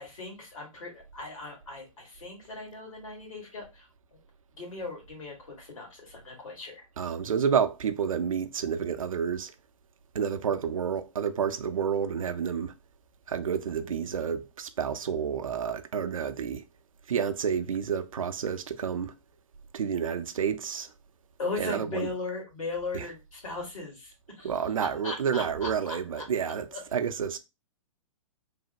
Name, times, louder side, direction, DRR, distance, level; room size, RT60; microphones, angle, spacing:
voice 1, 0.0-4.2 4.6-6.8 21.4-24.5 25.0-26.2 26.7-26.8, left 3 dB, 75° left, 1.7 m, -38 dB
voice 2, 7.0-9.5 10.1-12.7 13.3-16.6 17.1-19.1 19.7-20.9 21.6-22.1 22.9-23.1 24.4-26.7 26.9-27.4, right 7 dB, 80° right, 0.5 m, -29 dB
3.2 x 2.1 x 2.8 m
figure-of-eight pair, 115°, 17 cm